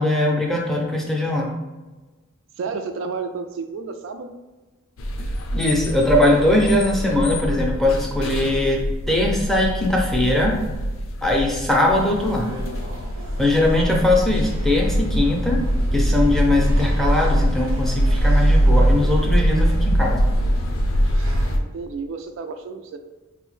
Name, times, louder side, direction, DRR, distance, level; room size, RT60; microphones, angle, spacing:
voice 1, 0.0-1.5 5.5-10.6 11.2-12.5 13.4-15.6 15.9-20.2, left 1 dB, ahead, -1 dB, 0.5 m, -20 dB
voice 2, 2.6-4.4 21.2-23.0, right 4 dB, 65° right, 6 dB, 0.3 m, -32 dB
sound 1, 5.0-21.6, equal, 75° left, 0.4 m, -22 dB
sound 2, 11.9-21.5, equal, 90° right, 0.9 m, -38 dB
4.4 x 2.0 x 3.1 m, 1.2 s
head